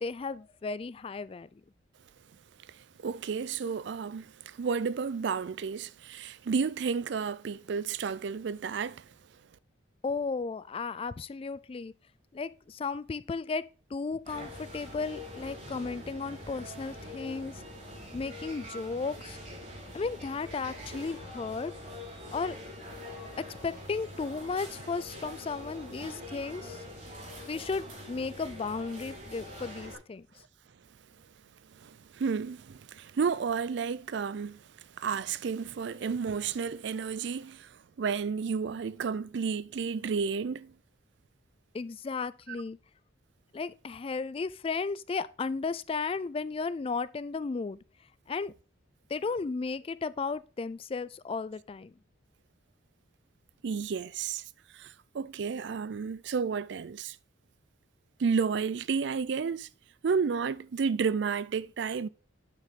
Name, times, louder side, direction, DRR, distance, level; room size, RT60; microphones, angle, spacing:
voice 1, 0.0-1.5 10.0-11.9 12.3-17.5 18.1-19.4 19.9-21.7 22.3-22.6 23.4-26.8 27.5-30.3 41.7-42.8 43.5-47.8 48.3-48.5 49.1-51.9, left 4 dB, 30° left, 0.3 m, -34 dB
voice 2, 2.7-9.1 31.7-34.6 35.0-40.7 42.5-42.6 53.6-54.4 54.7-57.2 58.2-59.7 60.0-62.1, right 5 dB, 60° right, 0.4 m, -32 dB
sound 1, 14.2-30.0, left 1 dB, 40° right, 4.1 m, -44 dB
9.1 x 5.3 x 4.1 m
head